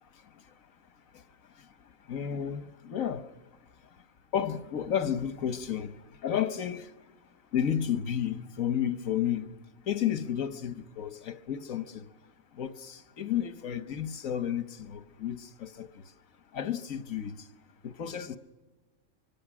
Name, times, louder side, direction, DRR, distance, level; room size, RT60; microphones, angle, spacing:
voice 1, 2.1-3.2 4.3-5.9 6.2-6.8 7.5-9.4 9.9-12.0 12.6-15.9 16.5-17.3 17.8-18.4, left 9 dB, 85° left, 1.5 m, -31 dB
25.0 x 24.5 x 6.2 m
omnidirectional pair, 1.4 m